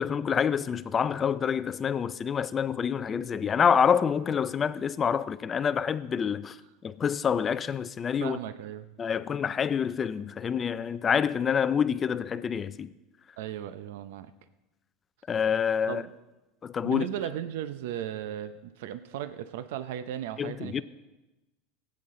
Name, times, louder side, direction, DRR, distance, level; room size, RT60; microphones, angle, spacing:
voice 1, 0.0-6.6 6.8-8.4 9.0-12.9 15.3-16.0 16.6-17.0 20.4-20.8, left 7 dB, 20° left, 0.4 m, -27 dB
voice 2, 8.2-8.9 13.4-14.3 15.9-16.0 16.8-20.8, right 11 dB, 80° right, 0.6 m, -36 dB
18.5 x 8.5 x 3.7 m
supercardioid pair, 150°, 0 cm